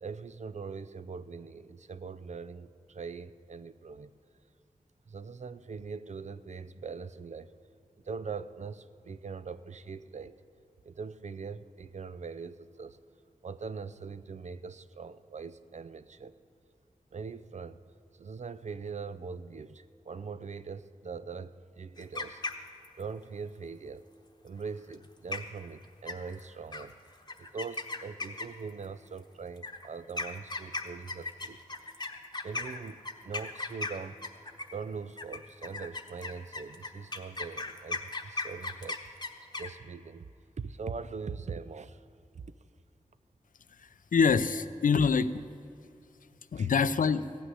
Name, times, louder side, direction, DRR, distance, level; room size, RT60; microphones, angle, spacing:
voice 1, 0.0-4.1 5.1-7.6 8.0-10.3 10.8-13.0 13.4-16.3 17.1-17.8 18.1-22.4 23.0-24.0 24.4-26.9 27.4-31.6 32.4-34.2 34.7-39.0 39.6-40.3 40.6-42.0 42.3-42.4 46.6-46.7, right 5 dB, 60° right, 14 dB, 0.5 m, -41 dB
sound 1, 22.0-23.0 24.9-25.0 25.3-25.6 26.1-26.4 26.7-26.8 27.3-28.7 29.6-34.8 35.2-39.7, left 3 dB, 30° left, 1.0 m, -37 dB
voice 2, 44.1-45.4 46.5-47.3, left 5 dB, 80° left, 14 dB, 0.5 m, -25 dB
15.5 x 6.2 x 9.6 m, 2.6 s
wide cardioid pair, 75°, 14 cm